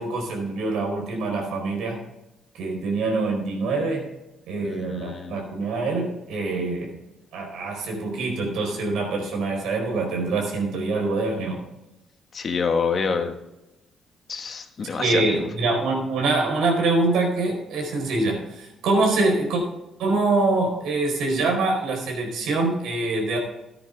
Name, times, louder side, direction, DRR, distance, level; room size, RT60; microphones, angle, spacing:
voice 1, 0.0-2.0 2.5-4.1 4.5-7.0 7.3-11.6 15.0-19.6 20.0-23.4, right 3 dB, 85° right, 2 dB, 4.4 m, -24 dB
voice 2, 4.6-5.4 12.3-13.4 14.3-15.5, left 5 dB, 50° left, 5 dB, 1.6 m, -27 dB
14.0 x 9.9 x 3.5 m, 0.93 s
cardioid pair, 90°, 0 cm